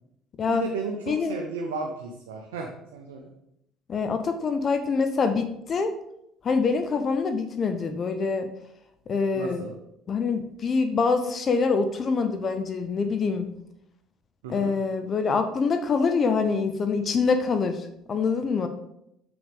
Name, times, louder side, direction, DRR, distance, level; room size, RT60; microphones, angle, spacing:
voice 1, 0.5-3.3 9.3-9.7 14.4-14.7, right 3 dB, 85° right, 2 dB, 0.7 m, -34 dB
voice 2, 1.1-1.4 3.9-5.9 6.4-8.5 9.1-9.6 10.1-13.5 14.5-18.7, left 4 dB, 45° left, 9 dB, 0.7 m, -25 dB
7.1 x 6.0 x 3.5 m, 0.80 s
hypercardioid pair, 65°, 0 cm